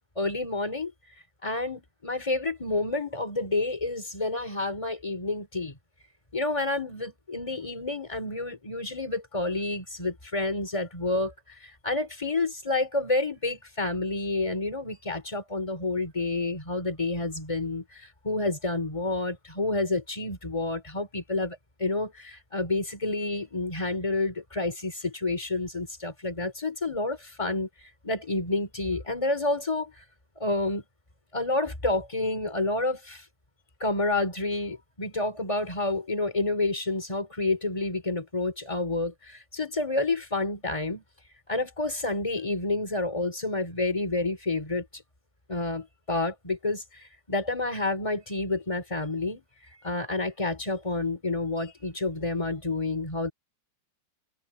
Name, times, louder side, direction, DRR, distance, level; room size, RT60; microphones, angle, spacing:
voice 1, 0.2-0.9 1.4-5.8 6.3-11.3 11.6-27.7 28.0-29.9 30.4-30.8 31.3-33.2 33.8-41.0 41.5-45.0 45.5-49.4 49.8-53.3, left 2 dB, 10° left, 2.4 m, -29 dB
omnidirectional pair, 4.8 m